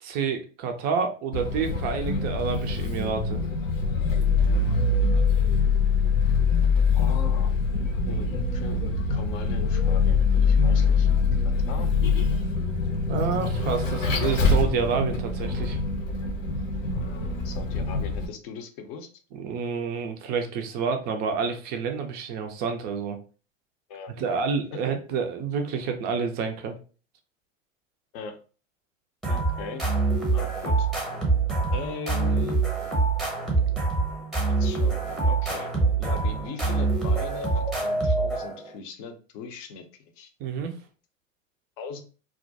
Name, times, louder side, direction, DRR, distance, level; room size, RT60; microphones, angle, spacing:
voice 1, 0.0-3.4 12.8-15.8 19.3-23.2 24.2-26.7 40.4-40.7, right 6 dB, 25° right, 5 dB, 0.3 m, -29 dB
Vehicle, 1.3-18.3, left 4 dB, 75° left, 0.8 m, -24 dB
voice 2, 6.9-7.5 8.1-11.1 11.7-11.9 17.4-19.1 23.9-24.4 28.1-28.4 29.3-29.9 30.3-30.9 31.7-32.6 34.6-39.9 40.2-40.3 41.8-42.0, left 5 dB, 40° left, 6 dB, 0.6 m, -39 dB
sound 1, 29.2-38.7, right 3 dB, ahead, 0.8 m, -25 dB
2.4 x 2.1 x 2.6 m, 0.37 s
hypercardioid pair, 90°, 39 cm